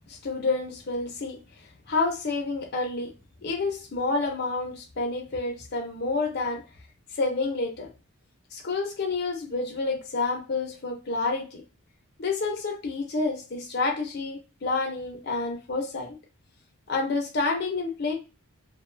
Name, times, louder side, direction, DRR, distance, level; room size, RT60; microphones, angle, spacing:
voice 1, 0.1-1.4 1.9-3.1 3.4-6.6 7.1-7.9 8.5-11.6 12.2-16.2 16.9-18.2, left 3 dB, 50° left, 2 dB, 0.6 m, -29 dB
2.6 x 2.1 x 2.5 m, 0.30 s
head